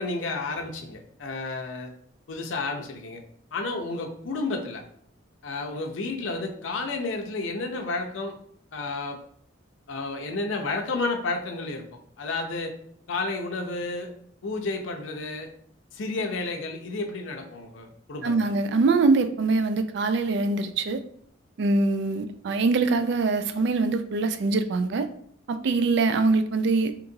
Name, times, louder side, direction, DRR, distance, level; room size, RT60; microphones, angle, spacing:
voice 1, 0.0-1.9 2.3-3.2 3.5-4.8 5.4-8.4 8.7-9.2 9.9-11.8 12.2-12.7 13.1-14.1 14.4-15.5 15.9-18.3, left 3 dB, 75° left, 3 dB, 0.5 m, -31 dB
voice 2, 18.2-21.0 21.6-25.1 25.5-26.9, right 3 dB, 60° right, 10 dB, 0.3 m, -23 dB
3.8 x 2.9 x 2.6 m, 0.64 s
head